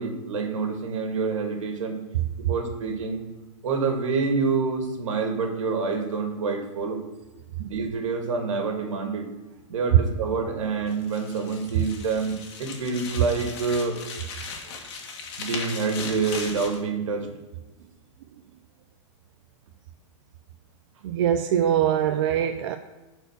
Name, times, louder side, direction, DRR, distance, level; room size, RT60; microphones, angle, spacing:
voice 1, 0.0-2.0 2.4-3.2 3.6-7.0 7.6-9.3 9.7-14.0 15.4-17.3, right 4 dB, 80° right, 5 dB, 2.0 m, -27 dB
sound 1, 10.9-16.8, left 5 dB, 55° left, 2.0 m, -38 dB
voice 2, 21.0-22.8, right 9 dB, 55° right, 7 dB, 0.6 m, -23 dB
11.0 x 4.7 x 6.6 m, 1.1 s
supercardioid pair, 165°, 16 cm